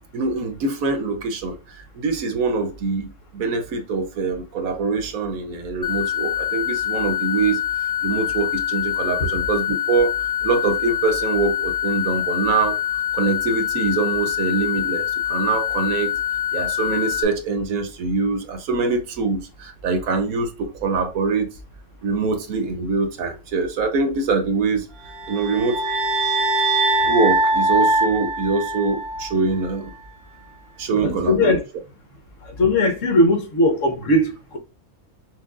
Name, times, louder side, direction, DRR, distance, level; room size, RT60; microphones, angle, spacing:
voice 1, 0.1-1.5 2.0-7.6 8.0-10.1 10.4-12.8 13.1-16.1 16.5-20.5 20.8-21.5 22.0-24.9 25.3-25.8 27.1-29.9 30.8-31.6, right 4 dB, 70° right, 1.2 m, -23 dB
sound 1, 5.8-17.2, left 10 dB, 20° left, 0.5 m, -25 dB
sound 2, 25.1-29.4, right 2 dB, 90° right, 1.5 m, -21 dB
voice 2, 31.0-31.6 32.4-34.6, left 1 dB, 60° left, 1.4 m, -19 dB
5.8 x 2.5 x 2.4 m
omnidirectional pair, 1.5 m